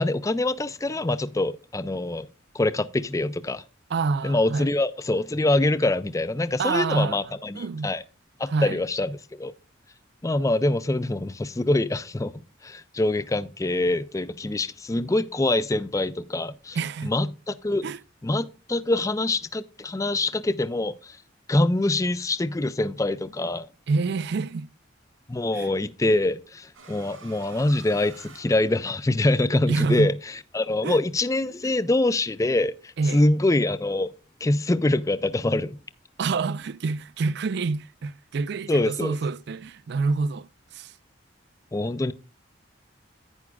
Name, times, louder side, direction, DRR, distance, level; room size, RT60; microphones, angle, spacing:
voice 1, 0.0-2.3 2.5-3.6 4.2-8.0 8.4-9.5 10.2-12.3 12.6-16.8 17.0-17.9 18.2-21.2 21.5-23.7 25.3-34.1 34.4-35.8 38.7-39.2 41.7-42.1, left 2 dB, 15° left, 0.4 m, -25 dB
voice 2, 3.9-4.7 6.6-7.2 7.6-7.9 8.5-8.8 16.8-17.1 17.8-18.0 23.9-24.7 25.6-25.7 29.7-30.1 30.8-31.0 33.0-33.2 36.2-40.9, right 4 dB, 55° right, 0.4 m, -27 dB
sound 1, 26.7-29.3, right 4 dB, 85° right, 4.7 m, -48 dB
10.5 x 9.7 x 2.3 m
head